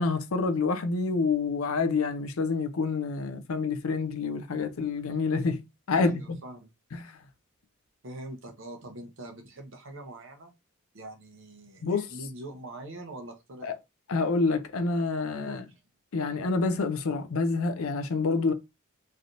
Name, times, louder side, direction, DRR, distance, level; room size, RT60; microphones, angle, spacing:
voice 1, 0.0-6.2 7.0-7.2 11.8-12.1 13.6-13.7 14.1-15.7 16.1-18.5, left 4 dB, 70° left, 0.5 m, -27 dB
voice 2, 5.9-6.7 8.0-10.5 10.9-13.7 15.5-15.6, right 1 dB, 60° right, 0.8 m, -43 dB
3.2 x 2.7 x 2.5 m
head